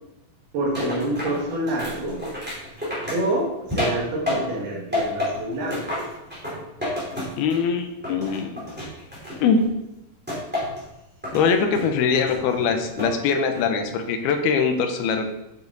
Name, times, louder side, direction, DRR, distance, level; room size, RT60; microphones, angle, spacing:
voice 1, 0.5-2.2 3.1-5.9, right 1 dB, 75° right, -2 dB, 3.9 m, -27 dB
sound 1, 0.7-4.6 4.9-7.7 8.0-9.7 10.3-10.9 11.2-11.9 12.3-13.2 13.5-14.0, left 1 dB, 5° right, 3.2 m, -30 dB
voice 2, 7.4-8.8 9.4-9.6 11.3-15.3, left 5 dB, 80° left, 5 dB, 2.8 m, -22 dB
9.4 x 7.3 x 4.0 m, 0.91 s
omnidirectional pair, 4.5 m